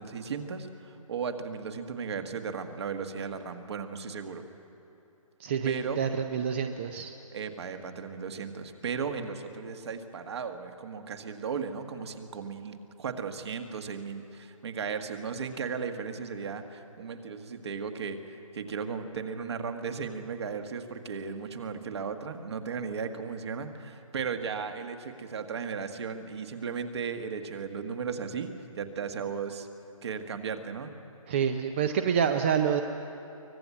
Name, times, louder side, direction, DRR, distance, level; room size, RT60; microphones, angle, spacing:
voice 1, 0.0-4.4 5.6-6.0 7.3-29.7 30.0-30.9, right 6 dB, 50° right, 6 dB, 1.7 m, -36 dB
voice 2, 5.4-7.1 31.3-32.8, right 7 dB, 20° right, 7 dB, 0.5 m, -27 dB
24.0 x 18.5 x 8.5 m, 2.9 s
hypercardioid pair, 160°, 18 cm